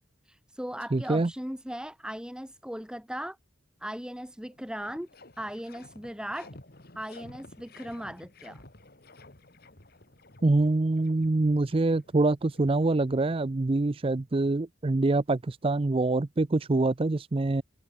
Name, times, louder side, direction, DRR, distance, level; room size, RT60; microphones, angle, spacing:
voice 1, 0.2-3.4 3.8-5.1 5.4-6.5 6.9-8.6, equal, 5° right, 2.9 m, -38 dB
voice 2, 0.9-1.3 10.4-17.6, right 2 dB, 30° right, 0.5 m, -25 dB
sound 1, 4.1-4.2 4.5-13.9, left 2 dB, 55° left, 2.7 m, -53 dB
head